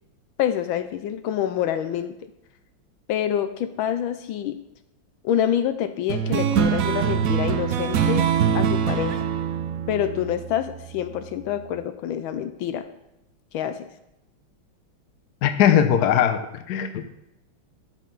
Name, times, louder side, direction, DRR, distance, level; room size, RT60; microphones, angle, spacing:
voice 1, 0.4-2.3 3.1-4.6 5.2-8.3 8.5-9.2 9.9-12.9 13.5-13.9, left 10 dB, 80° left, 10 dB, 1.4 m, -26 dB
sound 1, 6.1-11.0, right 8 dB, 70° right, 0.8 m, -23 dB
voice 2, 15.4-17.0, left 9 dB, 65° left, 8 dB, 1.1 m, -20 dB
11.5 x 6.5 x 3.9 m, 0.89 s
omnidirectional pair, 2.2 m